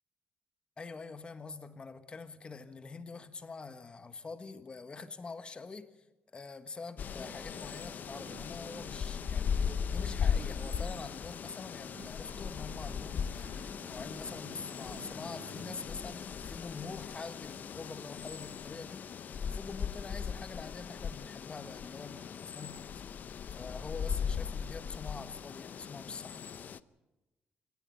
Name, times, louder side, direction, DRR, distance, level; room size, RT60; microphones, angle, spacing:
voice 1, 0.8-5.9 6.3-23.0 23.5-26.4, left 4 dB, 30° left, 10 dB, 1.5 m, -45 dB
sound 1, 7.0-26.8, left 7 dB, 50° left, 0.7 m, -38 dB
Singing, 7.0-18.2, right 6 dB, 80° right, 5.2 m, -54 dB
26.0 x 18.5 x 5.7 m, 1.1 s
cardioid pair, 125°, 4 cm